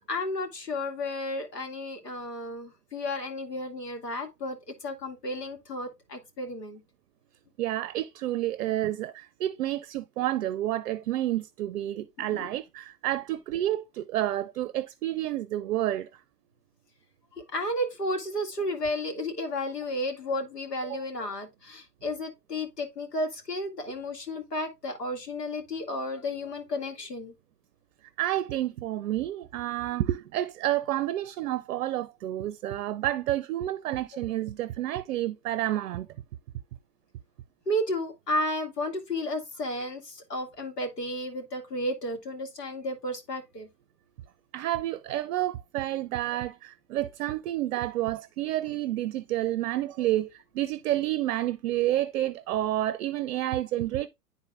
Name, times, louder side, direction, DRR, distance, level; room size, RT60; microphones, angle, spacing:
voice 1, 0.0-6.8 12.2-12.5 17.3-27.3 37.7-43.7, left 1 dB, 90° left, 2.0 m, -33 dB
voice 2, 7.6-16.1 20.8-21.0 28.2-36.1 44.5-54.1, right 14 dB, 60° right, 0.6 m, -29 dB
11.0 x 3.9 x 2.4 m
hypercardioid pair, 115°, 47 cm